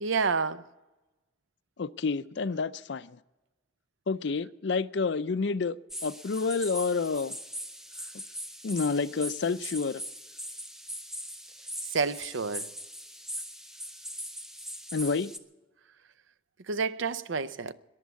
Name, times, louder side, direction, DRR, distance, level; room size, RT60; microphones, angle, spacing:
voice 1, 0.0-0.6 11.9-12.7 16.7-17.7, right 5 dB, 75° right, 0.7 m, -29 dB
voice 2, 1.8-3.2 4.1-5.8 6.0-7.4 8.6-10.0 14.9-15.3, left 4 dB, 60° left, 0.5 m, -29 dB
sound 1, 5.9-15.4, equal, 5° right, 0.6 m, -41 dB
21.5 x 7.3 x 8.2 m
head